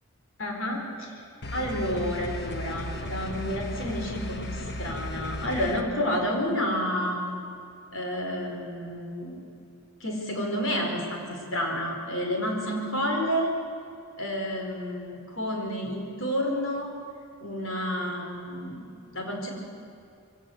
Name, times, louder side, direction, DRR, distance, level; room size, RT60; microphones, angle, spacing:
voice 1, 0.4-1.2 1.5-7.3 7.9-9.4 10.0-13.5 14.2-16.9 17.4-19.5, equal, 75° left, 1 dB, 4.7 m, -30 dB
sound 1, 1.4-5.8, left 1 dB, 60° left, 1.6 m, -35 dB
22.5 x 17.5 x 8.0 m, 2.4 s
head